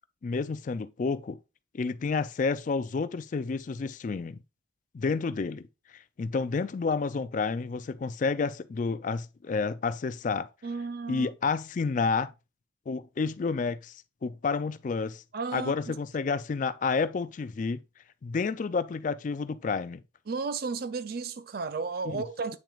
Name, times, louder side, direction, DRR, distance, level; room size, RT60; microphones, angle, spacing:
voice 1, 0.2-1.4 1.7-4.4 4.9-5.7 6.2-10.5 11.1-12.3 12.9-13.9 14.2-15.2 15.5-17.8 18.2-20.0 22.1-22.2, left 4 dB, 40° left, 0.3 m, -30 dB
voice 2, 10.6-11.3 15.3-16.0 20.3-22.6, right 4 dB, 50° right, 0.4 m, -33 dB
8.4 x 6.0 x 2.4 m
head